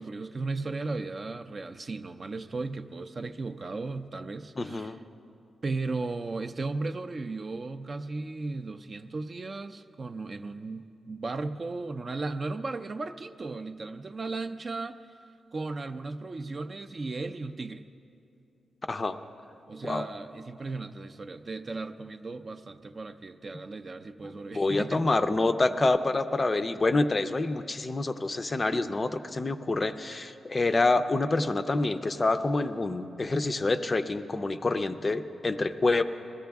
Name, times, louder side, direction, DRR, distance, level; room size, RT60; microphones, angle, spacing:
voice 1, 0.0-5.0 5.6-15.2 15.5-17.9 19.7-25.1, right 3 dB, 35° right, 9 dB, 0.4 m, -36 dB
voice 2, 4.6-5.0 18.9-19.2 19.8-20.0 24.2-36.0, left 2 dB, 25° left, 9 dB, 0.4 m, -27 dB
21.0 x 14.5 x 3.5 m, 2.6 s
wide cardioid pair, 155°, 0 cm